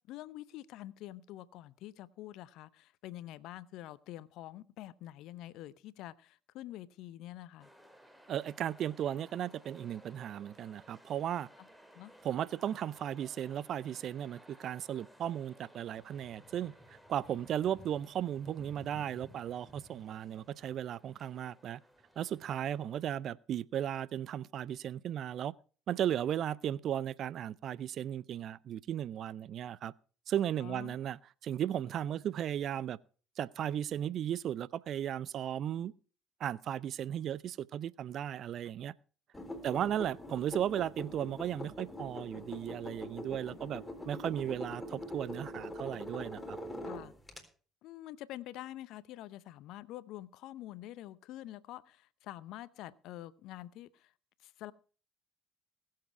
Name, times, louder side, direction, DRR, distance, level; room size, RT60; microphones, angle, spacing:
voice 1, 0.1-7.7 11.6-11.7 11.9-12.1 30.6-31.0 35.8-35.9 38.6-38.7 39.7-39.9 43.3-43.6 46.8-47.1 47.8-54.1 54.4-54.7, left 14 dB, 65° left, 0.7 m, -47 dB
sound 1, 7.6-23.2, equal, 5° right, 2.6 m, -58 dB
voice 2, 8.3-11.5 12.2-16.7 17.1-21.8 22.2-25.5 25.9-29.9 30.3-33.0 33.4-35.9 36.4-38.9 39.6-46.6, right 10 dB, 55° right, 0.5 m, -36 dB
sound 2, 39.3-47.4, left 1 dB, 15° left, 3.8 m, -43 dB
20.5 x 7.7 x 4.7 m
hypercardioid pair, 55°, 0 cm